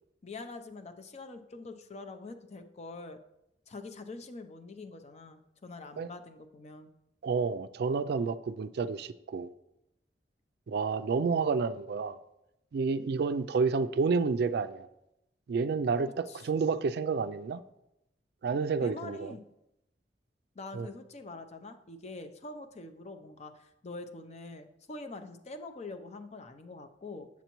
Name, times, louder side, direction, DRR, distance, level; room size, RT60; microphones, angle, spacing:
voice 1, 0.2-3.2 3.7-6.9 16.3-16.5 18.8-19.4 20.6-27.3, left 3 dB, 40° left, 8 dB, 0.5 m, -45 dB
voice 2, 7.2-9.5 10.7-12.2 12.7-14.9 15.5-17.6 18.4-19.3 20.7-20.9, right 5 dB, 65° right, 13 dB, 0.3 m, -30 dB
8.1 x 7.2 x 3.0 m, 0.85 s
head